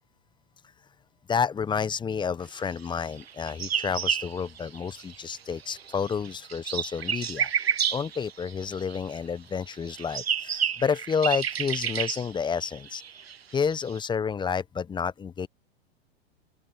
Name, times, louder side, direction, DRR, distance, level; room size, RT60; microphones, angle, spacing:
voice 1, 1.3-7.5 7.9-13.0 13.5-15.5, left 6 dB, 15° left, 1.1 m, -30 dB
sound 1, 3.1-5.3 5.6-9.2 9.7-14.0, right 8 dB, 75° right, 1.8 m, -31 dB
open air
figure-of-eight pair, 100°, 31 cm